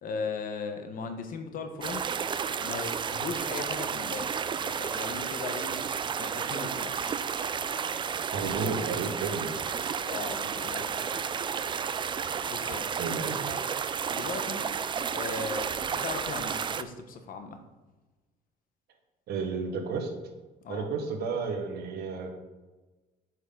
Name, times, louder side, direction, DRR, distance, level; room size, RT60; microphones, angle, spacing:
voice 1, 0.0-2.0 2.6-4.3 4.6-5.8 6.2-7.2 10.1-11.2 11.6-11.7 12.5-13.0 14.1-14.6 15.1-17.6 20.6-20.9, left 4 dB, 55° left, 6 dB, 1.1 m, -38 dB
sound 1, 1.8-16.8, right 7 dB, 30° right, 0.4 m, -32 dB
voice 2, 8.3-9.5 13.0-13.6 19.3-20.1 20.7-22.3, right 4 dB, 70° right, 4 dB, 1.4 m, -32 dB
7.7 x 5.9 x 3.9 m, 1.2 s
cardioid pair, 110°, 17 cm